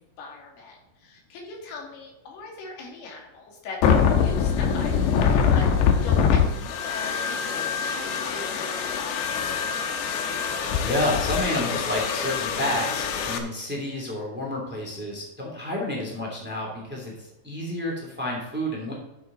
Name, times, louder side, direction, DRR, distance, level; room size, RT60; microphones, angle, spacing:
voice 1, 0.0-9.5, left 3 dB, 70° left, 0 dB, 4.2 m, -40 dB
sound 1, 3.8-13.4, left 7 dB, 85° left, 3.2 m, -24 dB
voice 2, 10.5-18.9, left 1 dB, 5° right, -2 dB, 1.8 m, -30 dB
12.5 x 7.5 x 3.9 m, 0.94 s
omnidirectional pair, 4.9 m